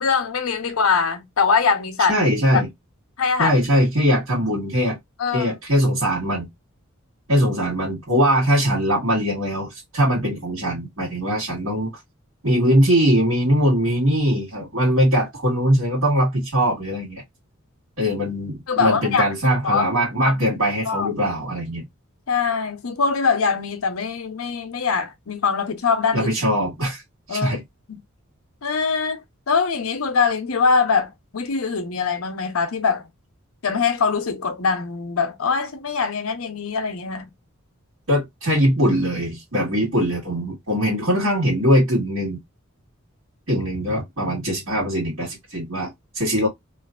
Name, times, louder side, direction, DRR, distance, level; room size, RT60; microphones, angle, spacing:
voice 1, 0.0-2.1 2.5-2.6 3.2-3.5 5.2-5.6 18.7-19.3 19.6-19.8 20.2-20.3 20.9-21.1 22.3-26.3 27.3-27.6 27.9-28.0 28.6-29.2 29.5-33.1 33.6-37.3, left 5 dB, 85° left, 0.7 m, -22 dB
voice 2, 2.1-2.7 3.4-5.0 5.3-6.5 7.3-11.9 12.4-17.2 18.0-21.8 26.1-27.0 27.3-27.6 38.1-42.4 43.5-46.5, equal, 80° right, 1.7 m, -21 dB
3.1 x 2.5 x 2.3 m
head